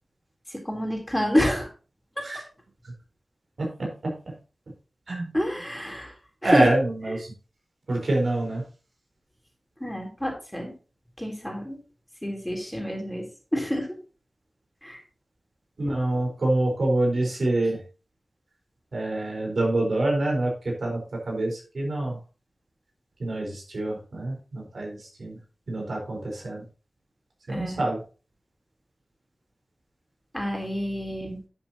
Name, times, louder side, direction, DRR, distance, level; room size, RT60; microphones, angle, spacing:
voice 1, 0.5-1.7 2.2-2.4 5.3-6.1 6.4-6.7 9.8-10.7 11.2-11.8 12.2-13.9 14.8-15.0 27.5-27.8 30.3-31.4, equal, 10° left, 1 dB, 3.5 m, -28 dB
voice 2, 3.6-4.1 5.1-5.3 6.4-7.3 7.9-8.6 15.8-17.8 18.9-22.2 23.2-25.4 25.7-26.6 27.5-28.0, right 2 dB, 80° right, -1 dB, 4.6 m, -26 dB
11.0 x 7.5 x 2.9 m, 0.35 s
wide cardioid pair, 60°, 0 cm